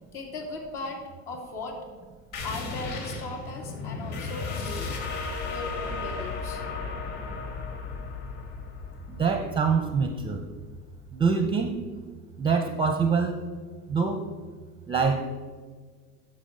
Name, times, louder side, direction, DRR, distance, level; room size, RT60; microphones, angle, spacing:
voice 1, 0.1-1.0 1.3-1.8 2.4-5.0 5.4-6.6, left 3 dB, 70° left, 1 dB, 2.5 m, -37 dB
sound 1, 2.3-11.5, left 4 dB, 55° left, 2.8 m, -35 dB
voice 2, 9.1-10.4 11.1-11.9 12.4-13.4 13.9-14.2 14.9-15.2, right 5 dB, 10° right, 7 dB, 0.5 m, -25 dB
9.8 x 6.3 x 5.1 m, 1.5 s
hypercardioid pair, 100°, 47 cm